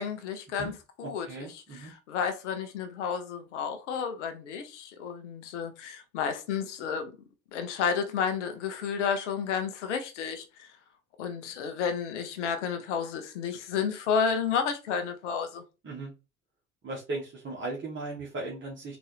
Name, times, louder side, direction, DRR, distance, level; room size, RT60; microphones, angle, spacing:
voice 1, 0.0-7.1 7.5-10.5 11.2-15.6, left 6 dB, 70° left, 0.7 m, -31 dB
voice 2, 1.0-1.9 15.8-16.1 16.8-19.0, right 2 dB, 30° right, 1.4 m, -37 dB
3.9 x 2.6 x 3.2 m
figure-of-eight pair, 50°, 36 cm